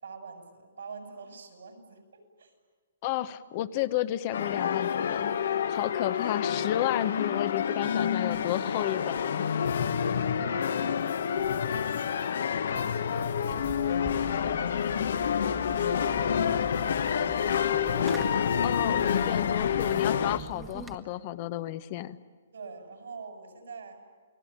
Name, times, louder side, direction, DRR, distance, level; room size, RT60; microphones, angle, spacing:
voice 1, 0.0-2.5 9.9-13.9 14.3-16.9 22.5-24.0, right 4 dB, 85° right, 6 dB, 7.0 m, -46 dB
voice 2, 3.0-5.3 5.7-9.5 18.6-22.2, left 13 dB, 30° left, 14 dB, 0.9 m, -32 dB
sound 1, 4.3-20.4, left 8 dB, 65° left, 1.3 m, -28 dB
Fireworks, 13.5-21.0, equal, 5° right, 1.4 m, -43 dB
29.0 x 20.0 x 9.9 m, 1.5 s
hypercardioid pair, 165°, 0 cm